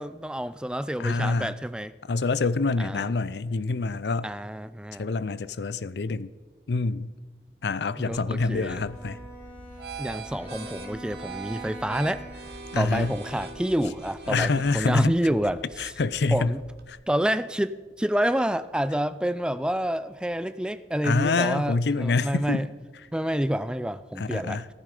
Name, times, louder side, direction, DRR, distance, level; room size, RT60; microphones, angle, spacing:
voice 1, 0.0-1.9 2.8-3.1 4.2-5.1 8.0-8.8 10.0-12.2 12.7-15.9 16.3-16.6 17.1-22.7 23.1-24.6, equal, 5° right, 0.4 m, -28 dB
voice 2, 1.0-1.5 2.0-4.3 4.9-6.3 6.7-7.1 7.6-9.2 12.7-13.1 14.3-15.2 15.8-16.6 16.9-17.0 21.0-22.7 24.2-24.7, left 3 dB, 70° left, 0.5 m, -26 dB
sound 1, 8.1-16.9, right 4 dB, 65° right, 1.7 m, -43 dB
Bowed string instrument, 8.6-13.9, right 1 dB, 15° left, 3.5 m, -44 dB
14.5 x 14.0 x 4.9 m
head